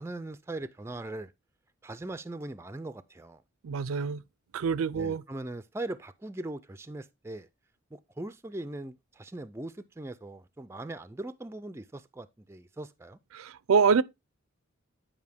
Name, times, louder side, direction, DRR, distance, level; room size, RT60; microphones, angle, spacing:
voice 1, 0.0-1.3 1.8-3.4 4.9-7.5 7.9-13.2, right 2 dB, 10° right, 0.3 m, -40 dB
voice 2, 3.6-4.2 4.5-5.2 13.3-14.0, right 5 dB, 80° right, 0.4 m, -25 dB
9.6 x 5.1 x 3.4 m
head